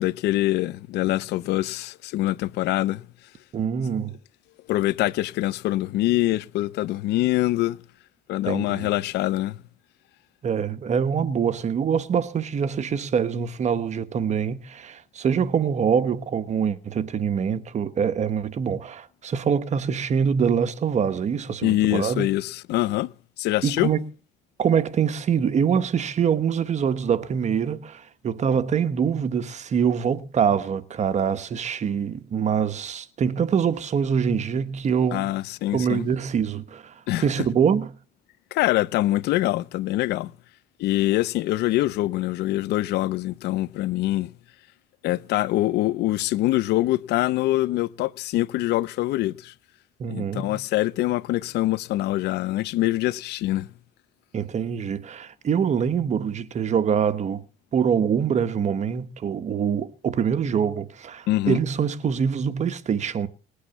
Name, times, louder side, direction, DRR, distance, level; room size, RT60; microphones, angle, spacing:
voice 1, 0.0-3.0 4.7-7.8 8.3-9.6 21.6-23.1 23.4-23.9 35.1-36.1 37.1-37.4 38.5-40.3 40.8-44.3 45.0-49.5 50.1-53.7 61.3-61.6, left 16 dB, 80° left, 0.7 m, -24 dB
voice 2, 3.5-4.1 8.4-8.9 10.4-22.3 23.6-24.0 24.6-35.3 35.7-36.9 37.2-37.9 50.0-50.6 54.3-57.4 57.7-63.3, right 7 dB, 45° right, 1.3 m, -24 dB
20.0 x 8.5 x 7.1 m
cardioid pair, 110°, 17 cm